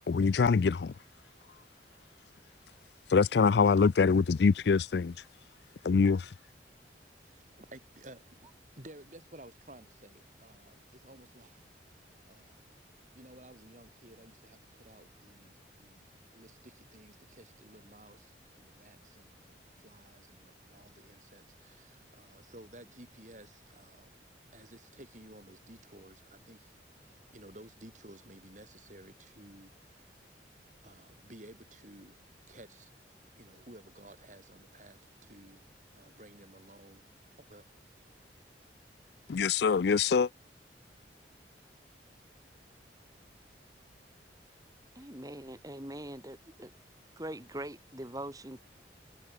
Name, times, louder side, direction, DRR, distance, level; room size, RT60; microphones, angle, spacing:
voice 1, 0.1-0.9 3.1-5.1 5.8-6.3 39.3-40.3, left 5 dB, 65° left, 0.4 m, -24 dB
voice 2, 7.2-8.4 8.7-11.7 12.3-12.6 13.1-24.1 24.5-26.7 27.0-30.2 30.8-32.2 32.5-32.9 33.4-35.6 35.9-37.7, right 1 dB, 45° right, 4.5 m, -54 dB
voice 3, 45.0-46.7 47.2-48.6, right 1 dB, 20° right, 2.5 m, -42 dB
head